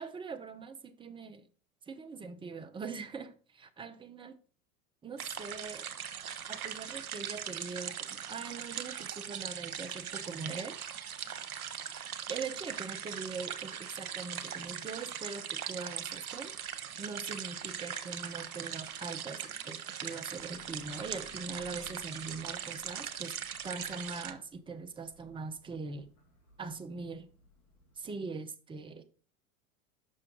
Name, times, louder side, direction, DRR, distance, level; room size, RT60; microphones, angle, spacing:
voice 1, 0.0-1.5 1.9-4.4 5.0-10.8 12.3-16.5 17.0-23.4 23.6-26.1 26.6-27.3 28.0-29.0, right 4 dB, 10° right, 0.7 m, -42 dB
sound 1, 5.2-24.3, right 8 dB, 85° right, 0.9 m, -40 dB
Thunder / Rain, 20.3-28.0, left 2 dB, 80° left, 2.5 m, -61 dB
6.4 x 5.7 x 3.8 m
hypercardioid pair, 90°, 43 cm